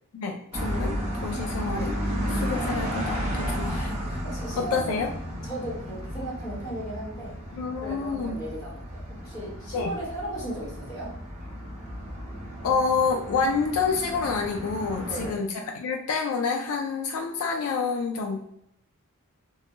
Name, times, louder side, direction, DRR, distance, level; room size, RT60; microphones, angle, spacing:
voice 1, 0.1-2.0 2.3-3.9 4.6-5.1 7.5-8.3 9.7-9.9 12.6-15.5 15.7-18.4, left 5 dB, 65° left, 2 dB, 0.3 m, -28 dB
sound 1, 0.5-15.3, equal, 30° right, 0.6 m, -33 dB
voice 2, 3.5-5.1 5.4-7.4 7.7-11.1 15.0-15.4, right 1 dB, 20° left, -6 dB, 1.0 m, -36 dB
2.2 x 2.1 x 2.9 m, 0.76 s
head